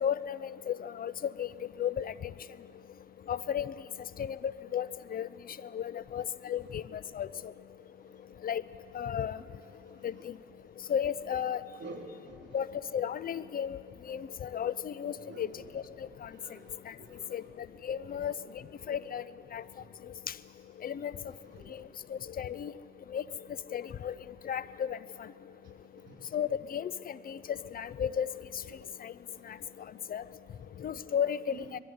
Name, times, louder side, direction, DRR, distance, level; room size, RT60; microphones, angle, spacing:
voice 1, 0.0-1.5 1.8-2.1 3.3-3.7 4.2-5.3 5.7-7.3 8.4-8.6 8.9-9.4 10.0-10.1 10.9-11.6 12.5-12.7 12.9-13.8 14.1-15.5 15.7-15.8 16.2-16.3 17.3-17.4 17.8-18.3 18.9-19.2 19.5-19.6 20.8-21.1 22.1-22.7 23.1-23.2 23.7-24.1 24.4-25.0 26.3-28.3 29.0-29.1 30.1-30.2 30.8-31.7, left 8 dB, 45° left, 17 dB, 0.5 m, -33 dB
voice 2, 11.8-12.3 15.2-15.5 16.3-16.7 17.0-17.4 18.1-18.2 21.2-21.8 26.1-26.2, right 2 dB, 60° right, 1 dB, 4.1 m, -48 dB
21.0 x 13.5 x 9.5 m, 2.7 s
cardioid pair, 90°, 20 cm